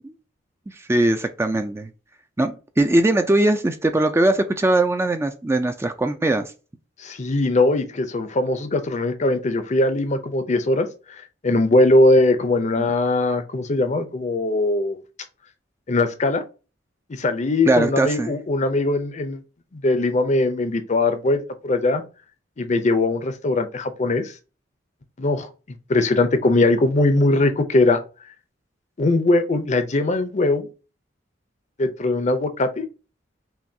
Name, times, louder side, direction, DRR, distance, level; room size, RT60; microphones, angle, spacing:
voice 1, 0.8-1.9 2.4-6.5 12.8-12.9 17.7-18.3, right 2 dB, 15° right, 0.3 m, -20 dB
voice 2, 7.0-15.0 15.9-16.4 17.1-19.4 19.7-22.0 22.6-24.3 25.2-25.5 25.9-28.0 29.0-30.7 31.8-32.8, left 2 dB, 40° left, 0.6 m, -20 dB
5.7 x 2.3 x 2.7 m
head